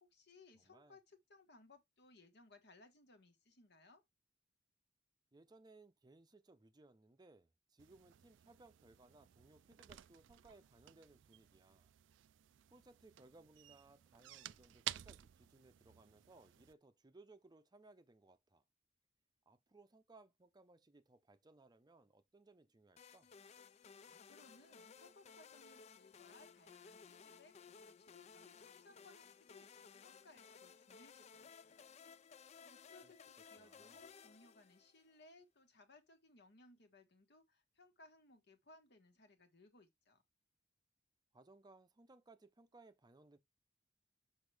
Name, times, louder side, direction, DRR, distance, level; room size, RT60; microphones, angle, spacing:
voice 1, 0.0-4.0 23.7-31.8 32.2-40.2, left 2 dB, 60° left, 1.5 m, -65 dB
voice 2, 0.6-1.0 5.3-11.9 12.7-18.6 19.5-23.3 33.0-33.1 33.5-34.1 41.3-43.4, right 2 dB, 20° right, 0.6 m, -64 dB
sound 1, 7.8-16.7, right 13 dB, 80° right, 0.4 m, -53 dB
sound 2, 23.0-35.2, left 6 dB, 35° left, 0.4 m, -59 dB
6.2 x 5.8 x 3.4 m
head